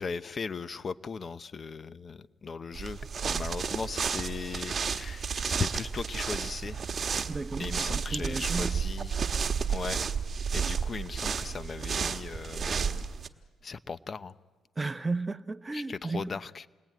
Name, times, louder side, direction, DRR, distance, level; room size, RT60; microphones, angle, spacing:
voice 1, 0.0-6.8 7.6-9.2 9.7-10.0 10.5-13.0 13.6-14.3 15.7-16.7, left 5 dB, 40° left, 0.8 m, -38 dB
sound 1, 2.7-13.3, right 6 dB, 45° right, 1.4 m, -32 dB
voice 2, 7.3-8.8 14.8-16.3, right 3 dB, 20° right, 0.8 m, -34 dB
28.5 x 21.0 x 9.3 m
cardioid pair, 90°, 0 cm